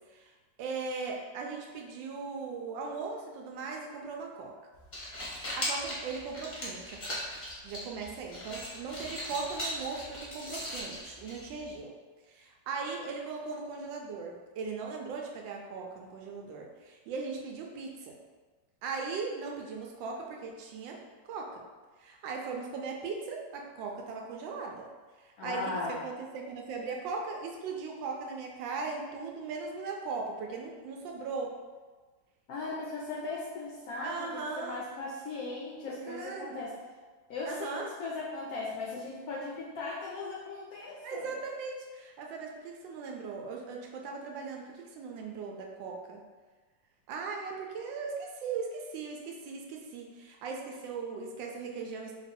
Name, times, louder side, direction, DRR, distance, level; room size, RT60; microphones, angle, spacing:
voice 1, 0.6-4.5 5.5-7.2 7.6-11.9 12.3-18.2 18.8-21.0 21.2-21.6 22.0-24.9 25.2-31.5 34.0-34.8 36.1-36.6 37.4-37.9 41.0-46.2 47.1-52.1, right 4 dB, 80° right, 1 dB, 1.3 m, -38 dB
sound 1, 4.7-11.8, equal, 30° left, 0.8 m, -39 dB
voice 2, 25.4-26.0 32.5-36.7 37.3-41.3, left 3 dB, 70° left, -4 dB, 0.9 m, -38 dB
3.0 x 2.9 x 4.2 m, 1.4 s
omnidirectional pair, 2.1 m